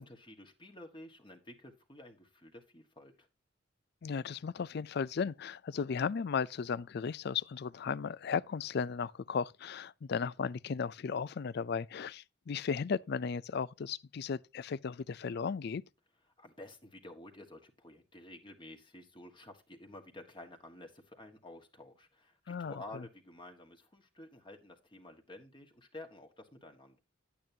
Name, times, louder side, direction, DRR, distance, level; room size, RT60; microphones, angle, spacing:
voice 1, 0.0-3.3 16.4-27.0, left 1 dB, 25° left, 1.4 m, -51 dB
voice 2, 4.0-15.8 22.5-23.0, left 6 dB, 50° left, 0.4 m, -35 dB
10.5 x 8.8 x 2.8 m
head